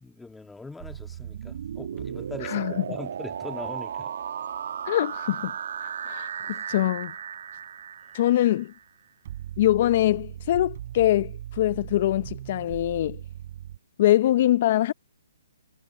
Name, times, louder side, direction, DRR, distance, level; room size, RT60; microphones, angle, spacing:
voice 1, 0.0-4.1 6.5-6.6, left 3 dB, 5° left, 1.9 m, -41 dB
sound 1, 0.8-2.5 9.2-13.8, right 12 dB, 45° right, 3.6 m, -39 dB
sound 2, 1.1-8.8, right 8 dB, 65° right, 1.6 m, -35 dB
voice 2, 2.4-2.7 4.9-5.5 5.8-7.1 8.1-8.7 9.6-13.2 14.0-14.9, left 13 dB, 45° left, 0.7 m, -23 dB
hypercardioid pair, 150°, 0 cm